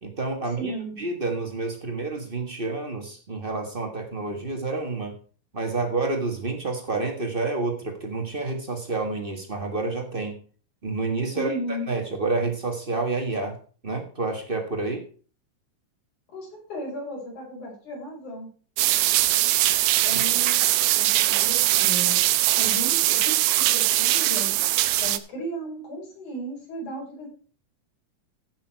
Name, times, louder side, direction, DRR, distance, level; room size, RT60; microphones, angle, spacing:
voice 1, 0.0-5.1 5.5-10.4 10.8-13.6 13.8-15.1 20.1-20.2, right 3 dB, 35° right, 4 dB, 0.9 m, -29 dB
voice 2, 0.6-1.0 11.3-11.9 16.3-18.5 20.0-20.7 20.9-22.2 22.6-24.5 25.0-27.3, right 1 dB, 70° left, -2 dB, 6.6 m, -35 dB
sound 1, 18.8-25.2, right 15 dB, 90° right, 2.2 m, -21 dB
15.5 x 6.1 x 4.6 m, 0.40 s
omnidirectional pair, 3.5 m